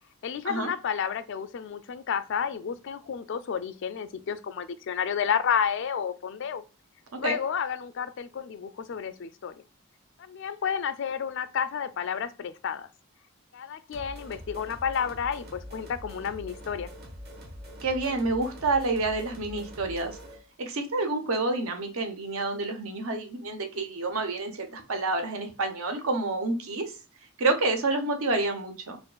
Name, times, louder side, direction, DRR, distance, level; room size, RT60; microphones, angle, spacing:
voice 1, 0.2-6.6 7.2-9.5 10.2-12.9 13.5-16.9, left 7 dB, 55° left, 0.3 m, -31 dB
sound 1, 13.9-20.4, equal, 45° right, 1.1 m, -44 dB
voice 2, 17.8-20.2 20.6-27.0 27.4-29.0, right 3 dB, 75° right, 0.8 m, -28 dB
4.4 x 2.3 x 2.3 m
head